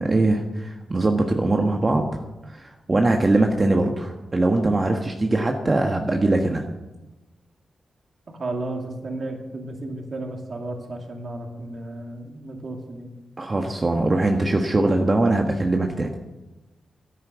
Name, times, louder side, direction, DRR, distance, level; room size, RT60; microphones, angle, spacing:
voice 1, 0.0-2.2 2.5-6.6 13.4-16.1, right 2 dB, 35° right, 3 dB, 1.3 m, -21 dB
voice 2, 8.4-13.1, right 2 dB, 55° right, 2 dB, 2.6 m, -33 dB
11.5 x 9.4 x 8.0 m, 1.1 s
cardioid pair, 70°, 0 cm